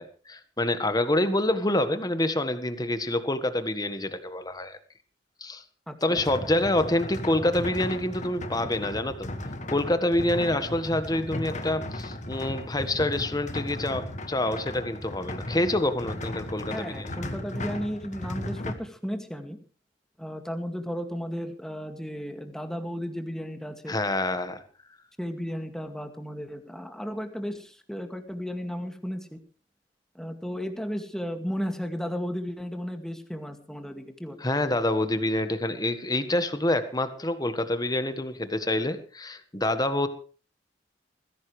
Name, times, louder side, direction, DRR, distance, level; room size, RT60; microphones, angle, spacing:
voice 1, 0.0-4.8 5.4-5.6 6.0-9.3 9.7-17.2 23.9-24.6 34.4-40.1, left 1 dB, 20° left, 10 dB, 1.5 m, -27 dB
voice 2, 5.9-6.2 16.7-19.6 20.2-24.0 25.2-29.4 30.1-34.4, equal, 5° left, 5 dB, 2.1 m, -34 dB
sound 1, 6.1-18.7, left 1 dB, 40° left, 1.8 m, -36 dB
21.0 x 16.0 x 3.3 m, 0.38 s
head